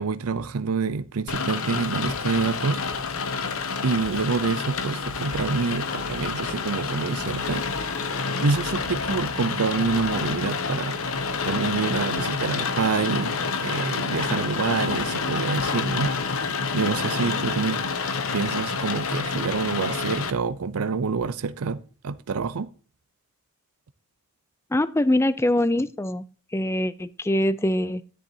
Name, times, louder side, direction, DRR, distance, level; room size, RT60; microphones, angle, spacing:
voice 1, 0.0-2.8 3.8-11.0 11.4-16.5 16.7-17.8 18.3-22.7, right 4 dB, 85° right, 0.5 m, -27 dB
Rain, 1.3-20.3, left 5 dB, 75° left, 0.9 m, -28 dB
sound 1, 5.2-12.4, left 2 dB, 45° left, 1.0 m, -43 dB
voice 2, 24.7-26.3 26.5-28.0, left 1 dB, 10° left, 0.4 m, -23 dB
11.0 x 10.0 x 2.8 m
head